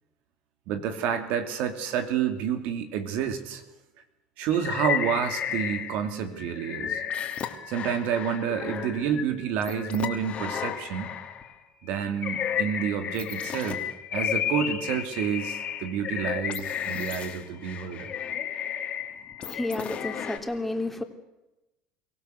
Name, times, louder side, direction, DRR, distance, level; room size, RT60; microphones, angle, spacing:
voice 1, 0.7-3.6 4.4-7.0 7.7-11.1 11.8-13.8 14.1-18.1, right 8 dB, 70° right, 8 dB, 2.8 m, -29 dB
sound 1, 4.5-6.1 6.4-11.5 12.0-20.4, left 9 dB, 45° left, 2.8 m, -33 dB
voice 2, 19.4-21.0, left 2 dB, 5° left, 5 dB, 3.3 m, -31 dB
23.5 x 16.5 x 8.2 m, 0.99 s
supercardioid pair, 90°, 3 cm